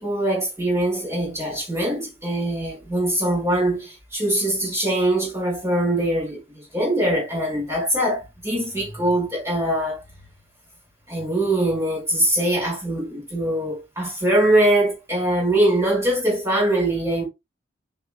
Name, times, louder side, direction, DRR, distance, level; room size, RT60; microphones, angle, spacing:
voice 1, 0.0-10.0 11.1-17.2, right 1 dB, 15° right, 4.8 m, -22 dB
10.5 x 5.0 x 2.2 m
head